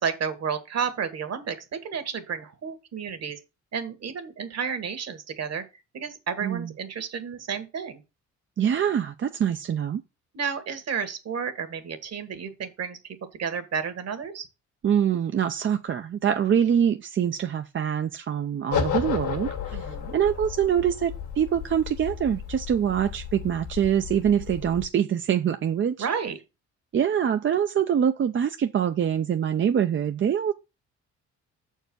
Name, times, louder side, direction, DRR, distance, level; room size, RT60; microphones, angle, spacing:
voice 1, 0.0-3.4 3.7-5.6 5.9-8.0 10.3-14.5 19.7-20.1 26.0-26.4, right 6 dB, 55° right, 1.7 m, -31 dB
voice 2, 8.6-10.0 14.8-26.1 26.9-30.5, right 8 dB, 40° right, 0.6 m, -24 dB
sound 1, 18.7-24.9, left 7 dB, 75° left, 1.9 m, -33 dB
6.8 x 4.6 x 6.2 m
cardioid pair, 90°, 30 cm